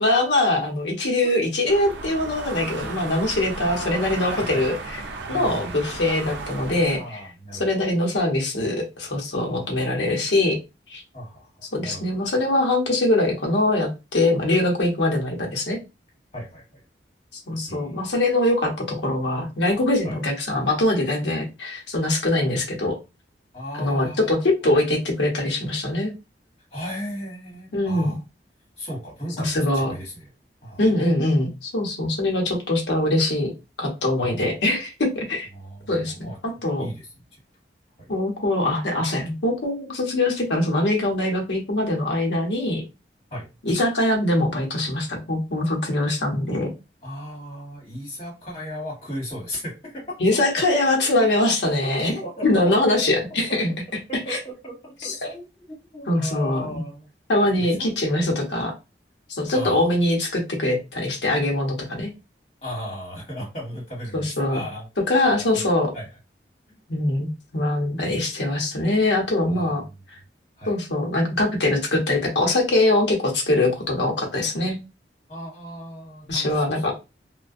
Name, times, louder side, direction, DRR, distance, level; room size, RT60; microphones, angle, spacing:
voice 1, 0.0-5.0 5.3-7.2 7.6-10.6 10.9-11.0 11.7-15.8 17.5-23.0 23.8-26.1 27.7-28.1 29.4-29.9 30.8-33.5 33.8-35.5 35.9-36.9 38.1-42.8 43.6-46.7 50.2-52.1 52.4-53.7 54.3-54.4 55.0-55.3 56.1-56.8 57.3-58.7 59.3-62.1 64.1-64.6 65.1-65.9 66.9-69.8 70.7-74.8 76.3-76.9, left 1 dB, 85° left, 1 dB, 0.8 m, -23 dB
sound 1, 1.7-7.0, right 3 dB, 90° right, 0.4 m, -35 dB
voice 2, 3.6-4.6 5.3-5.8 6.9-7.7 9.5-9.9 11.1-12.2 16.3-16.8 17.7-18.1 20.0-20.2 23.5-24.4 26.7-28.2 28.8-30.3 30.6-30.8 34.2-34.6 35.5-36.4 36.8-37.4 38.0-38.1 43.3-43.5 47.0-50.2 51.4-52.7 54.1-57.1 57.6-57.9 59.5-59.9 62.6-65.2 65.5-65.6 65.9-66.1 66.7-66.8 69.5-69.9 70.6-70.7 75.3-76.8, equal, 35° left, -4 dB, 1.5 m, -36 dB
2.5 x 2.1 x 2.4 m, 0.27 s
head